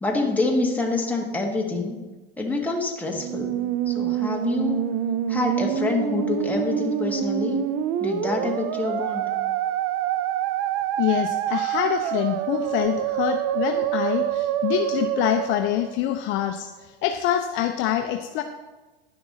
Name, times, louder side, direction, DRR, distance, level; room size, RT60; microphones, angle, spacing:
voice 1, 0.0-2.0 2.4-3.6 3.9-4.8 5.3-7.6 8.0-9.3, left 3 dB, 5° left, -1 dB, 1.3 m, -26 dB
Musical instrument, 3.1-16.4, right 10 dB, 45° right, 0.5 m, -26 dB
voice 2, 11.0-18.4, left 11 dB, 40° left, 6 dB, 0.5 m, -25 dB
10.5 x 5.9 x 4.1 m, 1.2 s
supercardioid pair, 125°, 31 cm